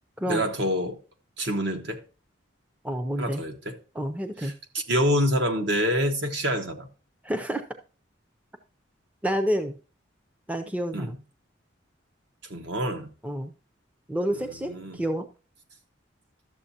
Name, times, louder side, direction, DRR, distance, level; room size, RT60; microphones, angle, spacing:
voice 1, 0.3-1.0 1.4-2.0 3.2-3.8 4.4-6.9 10.9-11.1 12.5-13.1 14.4-15.0, equal, 60° right, 1.2 m, -27 dB
voice 2, 2.8-3.4 3.9-4.5 7.2-7.6 9.2-9.8 10.5-11.2 13.2-13.5 14.1-15.3, equal, 5° right, 0.5 m, -29 dB
12.5 x 7.1 x 2.8 m
head